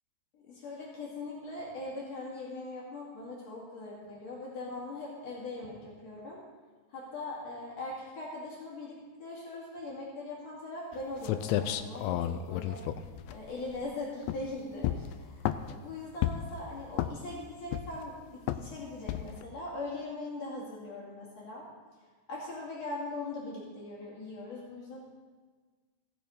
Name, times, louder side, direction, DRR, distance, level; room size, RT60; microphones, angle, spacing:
voice 1, 0.3-6.4 6.9-12.8 13.3-21.7 22.3-25.0, left 2 dB, 65° left, -5 dB, 3.5 m, -41 dB
sound 1, 10.9-11.0 11.2-13.8 14.2-14.5 14.8-15.8 16.2-16.6 16.9-17.4 17.7-18.1 18.5-18.7 19.1-19.4, left 12 dB, 85° left, 1.9 m, -32 dB
16.0 x 6.7 x 5.3 m, 1.4 s
omnidirectional pair, 3.3 m